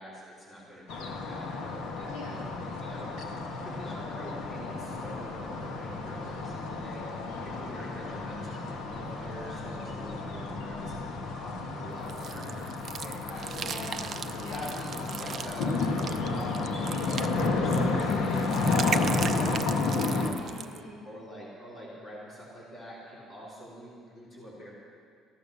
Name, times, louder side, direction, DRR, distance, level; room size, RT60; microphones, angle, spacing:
voice 1, 0.0-2.1 2.8-3.1 3.6-10.9 11.3-13.9 14.4-15.7 16.3-20.3 21.0-24.7, equal, 20° left, -7 dB, 3.6 m, -45 dB
sound 1, 0.9-20.3, left 3 dB, 65° left, 1.5 m, -31 dB
voice 2, 2.1-2.6 7.3-8.0 13.5-14.8 20.3-21.2, left 1 dB, 80° left, -5 dB, 4.2 m, -45 dB
sound 2, 12.1-20.8, right 7 dB, 30° right, 0.4 m, -38 dB
14.5 x 11.0 x 6.8 m, 2.2 s
cardioid pair, 175°, 0 cm